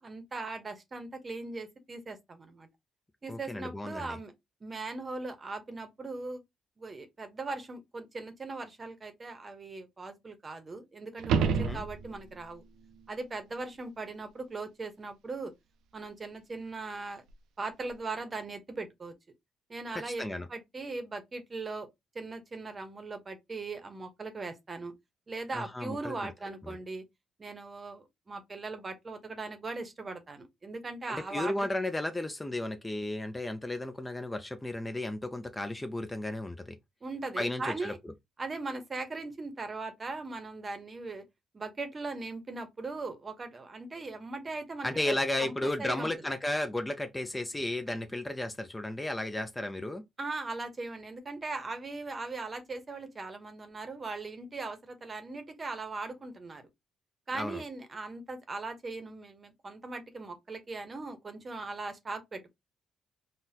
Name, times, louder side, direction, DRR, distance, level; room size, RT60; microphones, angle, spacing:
voice 1, 0.0-2.7 3.2-4.3 4.6-6.4 6.8-12.6 13.1-15.5 15.9-17.2 17.6-19.1 19.7-21.9 22.1-24.9 25.3-27.0 27.4-31.7 37.0-38.0 38.4-41.3 41.5-46.1 50.2-56.7 57.3-62.5, right 3 dB, 35° right, 0.8 m, -39 dB
voice 2, 3.3-4.2 11.5-11.8 19.9-20.5 25.5-26.3 26.7-26.8 31.1-36.8 37.4-38.1 44.8-50.0 57.3-57.6, left 1 dB, 15° left, 0.4 m, -34 dB
sound 1, 11.2-12.4 17.3-17.4, right 6 dB, 85° right, 0.4 m, -29 dB
4.0 x 2.2 x 2.6 m
cardioid pair, 90°, 0 cm